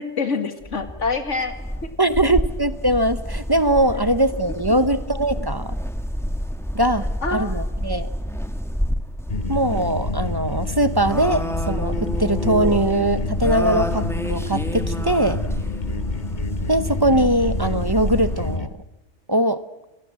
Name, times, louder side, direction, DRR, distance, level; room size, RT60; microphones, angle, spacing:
voice 1, 0.0-1.6 1.8-1.9 7.2-7.6, left 4 dB, 80° left, 8 dB, 2.2 m, -26 dB
sound 1, 0.6-18.6, equal, ahead, 1.3 m, -28 dB
voice 2, 2.0-5.8 6.7-7.0 7.3-8.1 9.5-15.4 16.7-18.7 19.3-19.6, right 1 dB, 20° right, 12 dB, 0.8 m, -21 dB
sound 2, 9.3-18.7, left 3 dB, 40° left, 1.1 m, -29 dB
28.5 x 22.0 x 7.7 m, 0.99 s
omnidirectional pair, 1.2 m